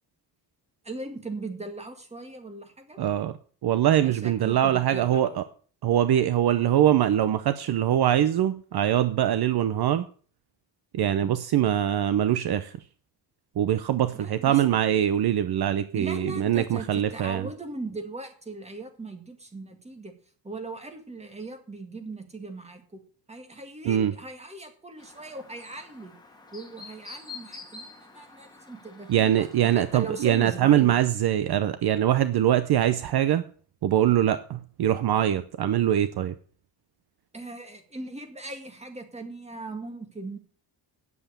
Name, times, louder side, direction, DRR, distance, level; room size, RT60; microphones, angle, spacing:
voice 1, 0.8-3.0 4.0-5.4 11.2-11.4 14.1-14.8 16.0-20.1 20.4-23.0 23.3-26.1 26.5-30.9 37.3-40.4, right 2 dB, 15° right, 6 dB, 2.0 m, -39 dB
voice 2, 3.0-3.3 3.6-5.4 5.8-10.1 10.9-12.7 13.6-17.5 23.8-24.1 29.1-33.4 33.8-36.3, right 11 dB, 55° right, 12 dB, 0.8 m, -23 dB
Chirp tweet, 25.0-30.5, left 4 dB, 10° left, 2.1 m, -47 dB
9.5 x 7.9 x 6.6 m, 0.43 s
cardioid pair, 150°, 44 cm